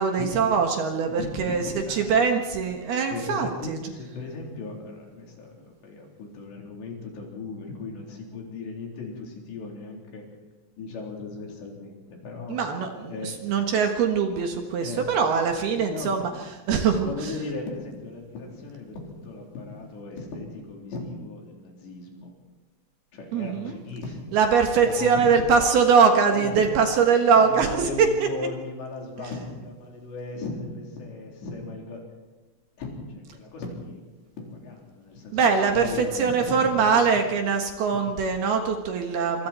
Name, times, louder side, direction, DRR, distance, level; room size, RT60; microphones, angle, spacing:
voice 1, 0.0-1.6 1.9-3.8 12.5-16.3 16.7-17.3 23.3-23.8 24.3-28.3 35.3-39.5, right 6 dB, 65° right, 4 dB, 3.1 m, -22 dB
voice 2, 1.1-2.4 3.1-10.2 10.8-12.0 12.2-12.6 13.1-13.4 14.8-15.1 15.7-16.2 17.0-22.3 23.1-25.7 26.2-26.7 27.3-32.0 32.8-34.0 34.4-37.2 37.9-38.0, left 3 dB, 65° left, 0 dB, 6.0 m, -37 dB
25.5 x 24.5 x 4.5 m, 1.1 s
omnidirectional pair, 5.5 m